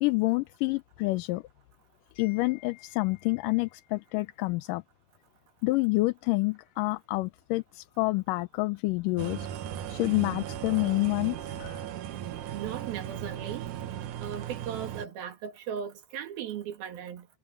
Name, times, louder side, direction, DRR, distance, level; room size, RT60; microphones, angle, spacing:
voice 1, 0.0-1.4 2.2-4.8 5.6-9.5 9.9-11.9, left 23 dB, 80° left, 2.1 m, -28 dB
sound 1, 9.2-15.1, right 10 dB, 65° right, 2.5 m, -37 dB
voice 2, 12.5-13.7 14.2-17.3, right 8 dB, 85° right, 3.9 m, -37 dB
omnidirectional pair, 4.1 m